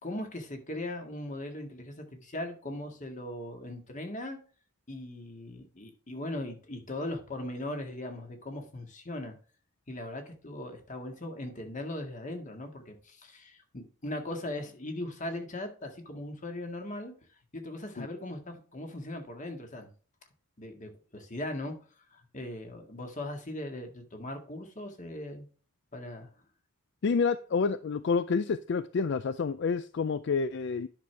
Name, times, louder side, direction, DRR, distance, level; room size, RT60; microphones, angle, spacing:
voice 1, 0.0-4.4 4.9-9.3 9.9-17.1 17.5-19.9 20.6-21.7 22.1-25.5 25.9-26.3, left 1 dB, 40° left, 1.8 m, -39 dB
voice 2, 27.0-30.9, left 5 dB, 60° left, 0.4 m, -28 dB
10.0 x 6.2 x 3.4 m
head